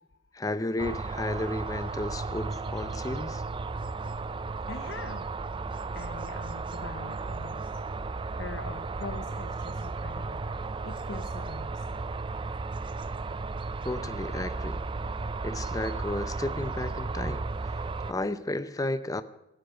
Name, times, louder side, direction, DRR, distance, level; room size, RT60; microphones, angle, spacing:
voice 1, 0.3-3.4 13.8-14.8 15.4-19.2, left 2 dB, 20° left, 0.6 m, -33 dB
sound 1, 0.8-18.1, right 3 dB, 25° right, 0.4 m, -34 dB
voice 2, 4.7-5.3 5.9-7.7 8.3-12.0, left 4 dB, 75° left, 0.7 m, -43 dB
13.0 x 10.5 x 6.1 m
head